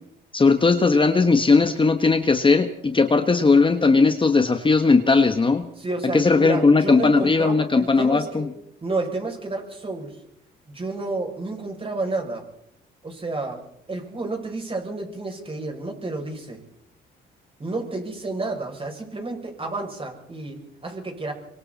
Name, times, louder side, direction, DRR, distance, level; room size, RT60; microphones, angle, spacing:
voice 1, 0.3-5.6 6.1-8.5, left 4 dB, 25° left, 7 dB, 1.5 m, -18 dB
voice 2, 5.8-8.5 8.8-10.1 10.7-12.4 13.0-13.6 13.9-16.6 17.6-21.3, right 2 dB, 30° right, 2 dB, 7.1 m, -30 dB
25.0 x 24.5 x 4.3 m, 0.75 s
cardioid pair, 90°, 20 cm